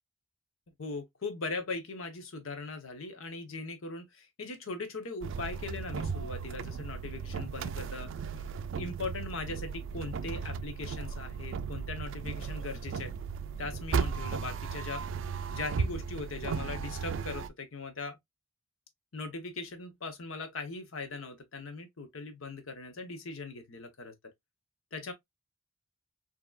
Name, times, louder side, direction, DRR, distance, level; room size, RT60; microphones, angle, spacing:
voice 1, 0.8-8.1 8.4-8.5 8.8-13.1 13.6-15.0 15.5-18.2 19.1-24.1 24.9-25.1, left 3 dB, 80° left, 0.8 m, -40 dB
sound 1, 5.2-17.5, right 5 dB, 65° right, 0.3 m, -36 dB
4.7 x 2.8 x 2.3 m
head